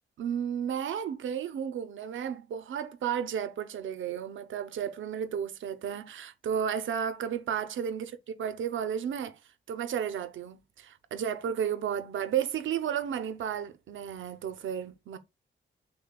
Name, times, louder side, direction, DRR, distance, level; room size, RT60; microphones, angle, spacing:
voice 1, 0.2-9.4 9.7-15.2, right 8 dB, 85° right, 0.5 m, -33 dB
6.4 x 2.2 x 2.2 m
wide cardioid pair, 150°, 20 cm